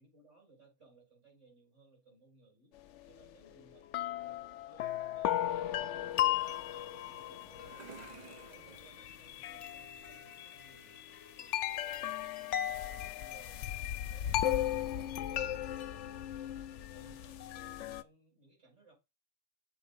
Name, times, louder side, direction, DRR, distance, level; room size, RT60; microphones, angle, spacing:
voice 1, 0.0-2.8 3.1-4.4 4.7-5.4 5.6-7.9 8.4-11.0 11.4-14.6 15.0-16.4 16.9-18.9, right 3 dB, 70° right, 5.8 m, -63 dB
sound 1, 3.2-3.3 3.9-18.0, left 12 dB, 75° left, 0.9 m, -36 dB
sound 2, 6.7-10.3, right 5 dB, 40° right, 0.9 m, -55 dB
7.7 x 4.3 x 5.4 m
omnidirectional pair, 1.3 m